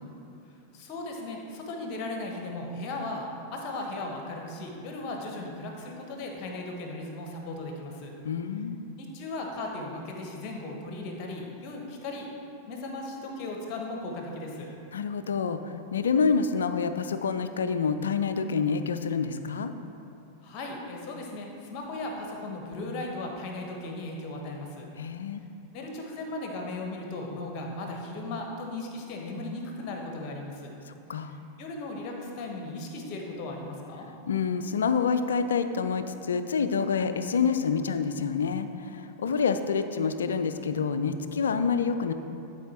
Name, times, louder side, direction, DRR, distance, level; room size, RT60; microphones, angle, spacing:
voice 1, 0.7-8.1 9.0-12.3 12.7-14.7 20.4-24.9 25.7-30.7 31.3-34.1, left 2 dB, 40° left, 1 dB, 1.3 m, -37 dB
voice 2, 8.2-8.8 14.9-19.7 25.0-25.4 31.1-31.4 34.3-42.1, left 5 dB, 65° left, 10 dB, 0.4 m, -27 dB
11.5 x 4.8 x 4.4 m, 2.7 s
figure-of-eight pair, 90°, 0 cm